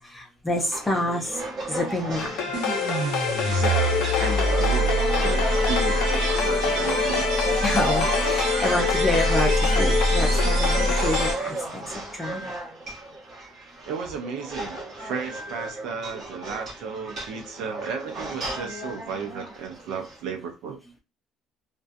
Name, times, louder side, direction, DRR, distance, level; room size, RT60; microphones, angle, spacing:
voice 1, 0.1-1.3 1.7-2.3 7.6-11.6 12.2-12.4, left 2 dB, 10° left, 0.5 m, -27 dB
sound 1, 0.6-20.2, right 2 dB, 40° right, 1.2 m, -35 dB
sound 2, 2.2-11.3, left 6 dB, 90° left, 0.6 m, -26 dB
sound 3, 2.5-11.7, right 1 dB, 90° right, 1.0 m, -25 dB
voice 2, 3.4-4.9 5.2-7.3 13.8-20.8, right 5 dB, 70° right, 0.5 m, -34 dB
2.6 x 2.2 x 2.5 m
cardioid pair, 170°, 0 cm